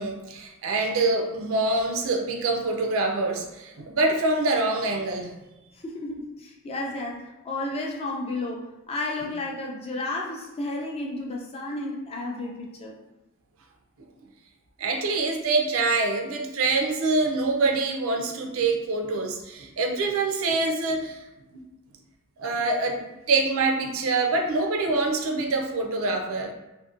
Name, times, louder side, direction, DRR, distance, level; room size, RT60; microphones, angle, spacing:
voice 1, 0.0-5.3 14.8-21.2 22.4-23.0 23.3-26.5, right 3 dB, 70° right, 3 dB, 0.4 m, -25 dB
voice 2, 5.7-13.0, left 2 dB, 30° left, -1 dB, 0.4 m, -32 dB
2.6 x 2.1 x 2.4 m, 1.0 s
head